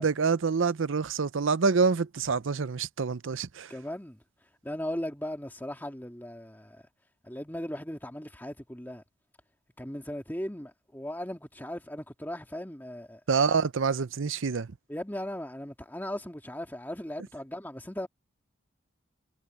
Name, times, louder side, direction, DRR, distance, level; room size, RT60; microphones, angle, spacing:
voice 1, 0.0-3.7 13.3-14.7, right 5 dB, 70° right, 0.6 m, -26 dB
voice 2, 3.7-4.2 4.6-6.8 7.2-9.0 9.8-13.2 14.9-18.1, left 1 dB, 10° left, 2.1 m, -37 dB
head